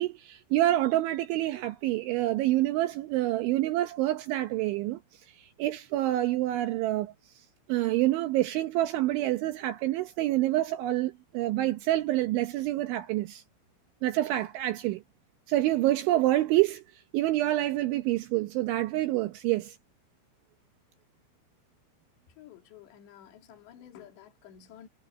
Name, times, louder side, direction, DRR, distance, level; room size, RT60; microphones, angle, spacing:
voice 1, 0.0-5.0 5.4-7.1 7.7-13.4 14.0-15.0 15.5-16.8 17.1-19.8, right 15 dB, 75° right, 3.2 m, -27 dB
voice 2, 22.4-24.9, left 10 dB, 60° left, 4.9 m, -51 dB
omnidirectional pair, 5.9 m